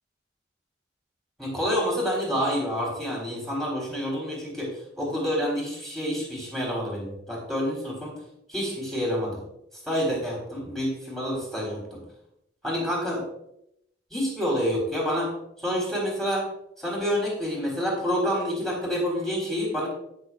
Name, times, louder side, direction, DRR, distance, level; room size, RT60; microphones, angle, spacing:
voice 1, 1.4-4.7 5.0-8.1 8.5-9.4 9.9-12.0 12.6-13.2 14.1-15.3 15.6-16.5 16.8-19.9, equal, ahead, -4 dB, 4.0 m, -28 dB
16.0 x 6.8 x 2.5 m, 0.77 s
head